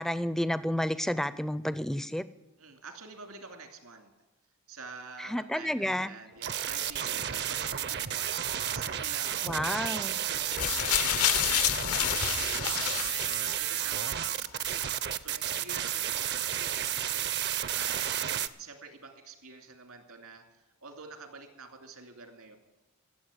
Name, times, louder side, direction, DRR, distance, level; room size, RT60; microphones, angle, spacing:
voice 1, 0.0-2.2 5.2-6.1 9.4-10.2, equal, ahead, 15 dB, 0.4 m, -30 dB
voice 2, 2.6-4.1 4.7-13.2 13.6-14.9 15.2-16.8 17.0-17.3 17.7-18.2 18.6-20.4 20.8-22.6, right 4 dB, 80° right, 5 dB, 2.6 m, -48 dB
sound 1, 6.3-18.5, right 10 dB, 50° right, 0.6 m, -32 dB
sound 2, 10.5-13.8 14.7-14.8, left 11 dB, 80° left, 0.8 m, -29 dB
14.0 x 7.7 x 9.7 m, 1.1 s
head